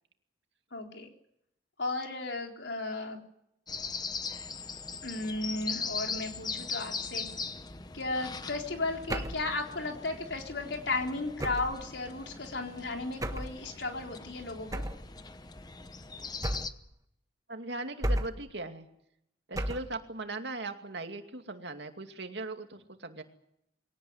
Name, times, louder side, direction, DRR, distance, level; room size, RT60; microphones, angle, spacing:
voice 1, 0.7-1.1 1.8-3.2 5.0-7.3 7.9-14.8, left 2 dB, 80° left, 3 dB, 4.1 m, -35 dB
sound 1, 3.7-16.7, left 4 dB, 20° left, 0.9 m, -40 dB
sound 2, 9.1-9.5 11.4-11.8 13.2-13.6 14.7-15.1 16.4-16.9 18.0-18.5 19.5-20.0, right 1 dB, 20° right, 1.4 m, -33 dB
voice 2, 17.5-18.9 19.5-23.2, right 2 dB, 75° right, 6 dB, 2.5 m, -39 dB
22.5 x 18.0 x 9.8 m, 0.77 s
head